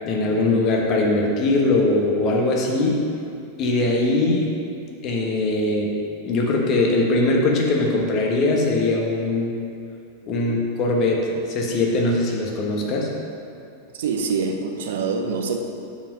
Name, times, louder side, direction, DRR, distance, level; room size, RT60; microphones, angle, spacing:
voice 1, 0.0-3.0 3.6-4.5 5.0-5.9 6.2-9.6 10.3-13.1, left 2 dB, 35° left, -1 dB, 1.3 m, -21 dB
voice 2, 13.9-15.6, right 5 dB, 60° right, 4 dB, 0.8 m, -25 dB
7.0 x 5.1 x 6.2 m, 2.5 s
figure-of-eight pair, 90°, 0 cm